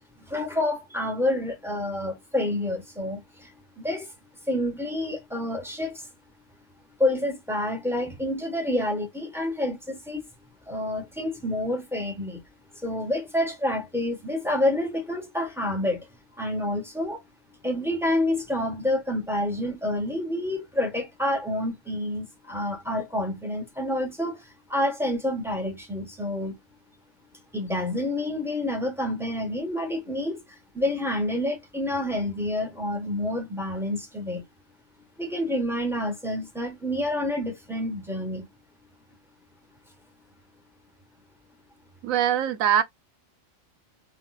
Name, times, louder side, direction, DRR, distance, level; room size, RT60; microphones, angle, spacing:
voice 1, 0.2-3.5 3.8-4.1 4.5-6.1 7.0-10.2 10.7-12.4 12.8-16.1 16.4-17.2 17.6-26.6 27.5-34.4 35.2-38.5, left 1 dB, 5° right, 0.6 m, -28 dB
voice 2, 42.0-42.8, right 9 dB, 90° right, 1.0 m, -22 dB
3.7 x 2.3 x 2.3 m
omnidirectional pair, 1.4 m